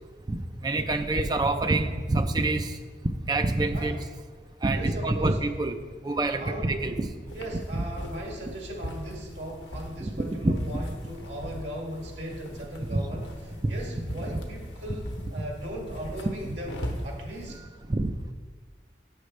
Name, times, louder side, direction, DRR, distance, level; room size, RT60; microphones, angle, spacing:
voice 1, 0.3-2.8 3.3-4.0 4.6-5.8 6.0-7.1 7.7-7.8 10.0-10.1 10.4-10.6 12.9-13.0 13.6-13.8 14.3-14.4 16.4-16.6 17.9-18.3, right 2 dB, 25° right, 7 dB, 0.4 m, -26 dB
voice 2, 4.4-5.4 6.4-6.8 7.3-13.3 13.7-17.6, right 1 dB, 85° right, -1 dB, 1.9 m, -38 dB
sound 1, 7.3-17.6, equal, 85° left, 0.9 m, -40 dB
8.7 x 6.5 x 3.2 m, 1.5 s
head